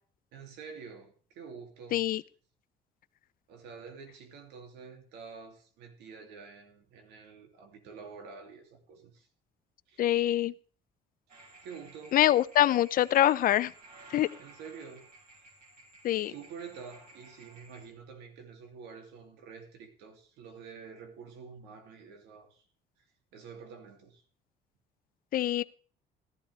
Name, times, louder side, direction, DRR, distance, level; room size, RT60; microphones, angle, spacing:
voice 1, 0.3-2.0 3.5-9.3 9.9-10.1 11.6-12.2 14.4-15.1 16.2-22.6 23.3-24.2, right 5 dB, 90° right, 2.8 m, -48 dB
voice 2, 10.0-10.5 12.1-13.7 14.1-14.3 16.0-16.3 25.3-25.6, left 13 dB, 55° left, 0.6 m, -24 dB
sound 1, 11.3-17.9, right 2 dB, 55° right, 5.5 m, -55 dB
15.0 x 11.5 x 3.4 m
cardioid pair, 110°, 17 cm